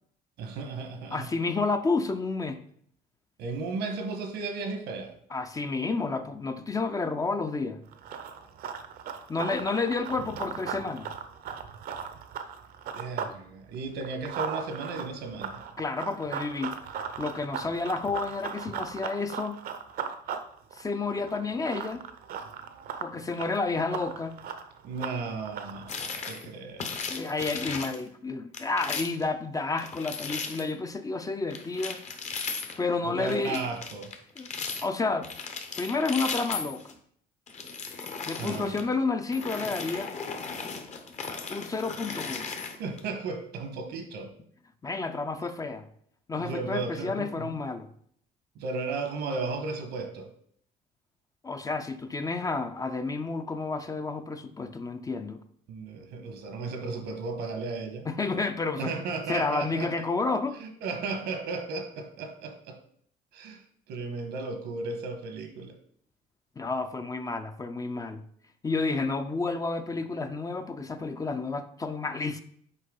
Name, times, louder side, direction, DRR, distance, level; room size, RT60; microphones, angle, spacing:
voice 1, 0.4-1.3 3.4-5.2 12.9-15.6 24.8-27.0 33.0-34.1 38.4-38.8 42.8-44.3 46.4-47.6 48.5-50.3 55.7-58.1 58.7-60.1 60.6-62.8 63.3-65.7, right 4 dB, 85° right, 1.3 m, -35 dB
voice 2, 1.1-2.6 5.3-7.8 9.3-11.1 15.8-16.7 17.2-19.6 20.7-22.0 23.0-24.4 27.1-32.0 32.8-33.6 34.4-34.5 34.8-35.3 35.8-36.9 38.3-40.1 41.5-42.5 44.8-45.8 46.3-47.9 51.4-55.4 58.0-58.9 59.3-60.6 66.6-68.2 68.6-72.4, left 3 dB, 20° left, 0.5 m, -30 dB
Run, 7.9-13.4 13.7-25.9, right 7 dB, 65° right, 0.7 m, -38 dB
sound 1, 25.9-26.5 26.8-28.0 28.5-29.3 29.8-30.7 31.5-32.8 33.2-34.9 35.2-36.9 37.5-38.8 39.3-43.0, left 5 dB, 40° left, 0.9 m, -36 dB
6.6 x 4.5 x 3.8 m
cardioid pair, 110°, 17 cm